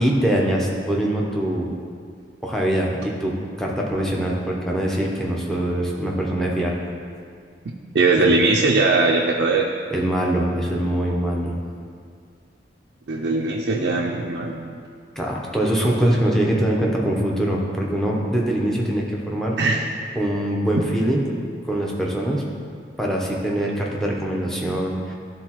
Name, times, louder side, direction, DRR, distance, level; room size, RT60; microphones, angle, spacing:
voice 1, 0.0-1.7 2.4-6.8 8.2-8.3 9.9-11.6 15.2-19.6 20.2-21.3 21.7-22.4 23.0-25.1, right 1 dB, 5° left, -3 dB, 0.8 m, -23 dB
voice 2, 7.9-9.7 13.1-14.8 19.6-19.9, right 3 dB, 70° right, -2 dB, 0.4 m, -20 dB
12.0 x 4.0 x 3.0 m, 2.2 s
head